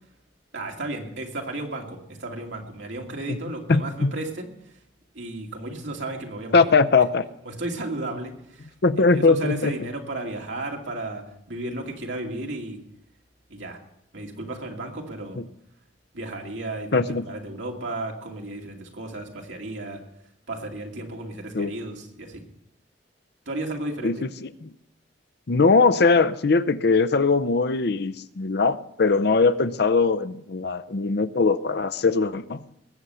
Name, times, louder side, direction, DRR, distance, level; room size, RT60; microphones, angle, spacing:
voice 1, 0.5-4.8 5.1-6.7 7.4-8.7 9.1-12.8 13.5-13.8 14.1-15.4 16.1-20.0 20.5-22.4 23.5-24.3, right 2 dB, 85° right, 1 dB, 2.4 m, -34 dB
voice 2, 3.7-4.1 6.5-7.2 8.8-9.7 16.9-17.2 21.5-21.7 24.0-24.7 25.5-32.6, left 4 dB, 60° left, 13 dB, 0.6 m, -21 dB
20.5 x 7.9 x 5.6 m, 0.78 s
head